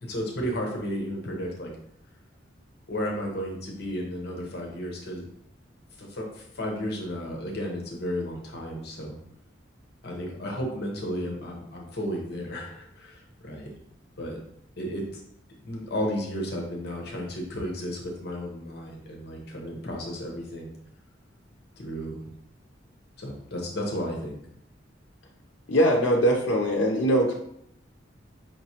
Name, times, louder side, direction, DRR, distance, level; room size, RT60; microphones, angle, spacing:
voice 1, 0.0-1.7 2.9-5.2 6.0-9.1 10.0-13.7 14.2-14.4 14.8-15.2 15.6-20.7 21.8-22.2 23.2-24.4, equal, 55° left, 0 dB, 0.9 m, -33 dB
voice 2, 25.7-27.3, equal, 80° left, -1 dB, 0.6 m, -21 dB
5.1 x 3.0 x 2.8 m, 0.70 s
head